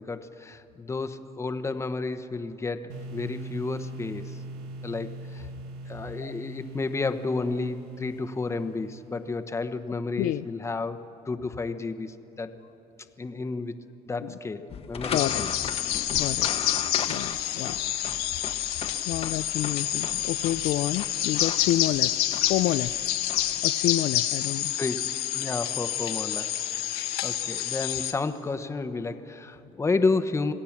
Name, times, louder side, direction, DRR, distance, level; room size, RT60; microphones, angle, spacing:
voice 1, 0.0-2.8 3.1-4.4 4.8-5.5 5.9-12.5 13.2-13.7 14.1-15.5 17.6-17.7 24.8-25.1 25.3-30.5, left 3 dB, 20° left, 10 dB, 1.0 m, -31 dB
sound 1, 2.9-9.7, right 1 dB, 85° right, 1.7 m, -41 dB
sound 2, 14.7-23.6, left 6 dB, 40° left, 1.0 m, -38 dB
sound 3, 15.1-28.1, left 13 dB, 80° left, 1.3 m, -28 dB
voice 2, 15.1-15.4 16.1-16.8 17.1-17.8 19.1-22.1 22.5-22.9 23.6-24.7, left 14 dB, 65° left, 13 dB, 0.4 m, -29 dB
27.0 x 17.5 x 7.3 m, 2.9 s
cardioid pair, 115°, 16 cm